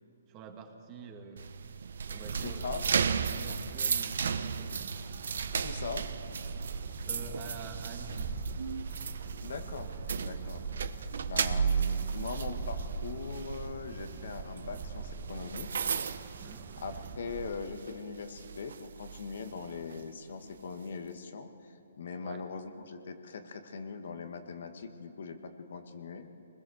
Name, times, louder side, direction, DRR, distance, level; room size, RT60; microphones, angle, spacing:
voice 1, 0.3-1.5 2.1-2.7 3.1-5.0 7.0-8.4 16.4-16.7 22.2-22.5, right 4 dB, 25° right, 4 dB, 1.9 m, -47 dB
sound 1, 1.4-17.3 17.6-17.9 18.4-20.0, right 6 dB, 70° right, 1.0 m, -35 dB
sound 2, 2.1-17.5, right 5 dB, 45° right, 2.0 m, -42 dB
voice 2, 2.4-2.8 5.6-6.1 9.4-10.6 11.3-15.7 16.8-26.3, left 5 dB, 65° left, 6 dB, 1.8 m, -41 dB
23.5 x 20.5 x 6.6 m, 2.8 s
hypercardioid pair, 150°, 0 cm